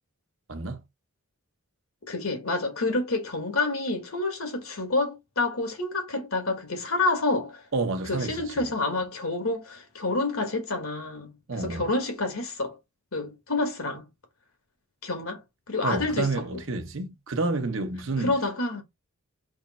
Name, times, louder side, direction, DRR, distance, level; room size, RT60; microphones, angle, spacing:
voice 1, 0.5-0.8 7.7-8.7 11.5-11.9 15.8-18.4, right 3 dB, 60° right, 0.8 m, -29 dB
voice 2, 2.1-7.6 8.1-12.8 13.1-14.1 15.0-16.4 18.2-18.8, left 2 dB, 75° left, 1.6 m, -28 dB
3.5 x 3.1 x 4.1 m
head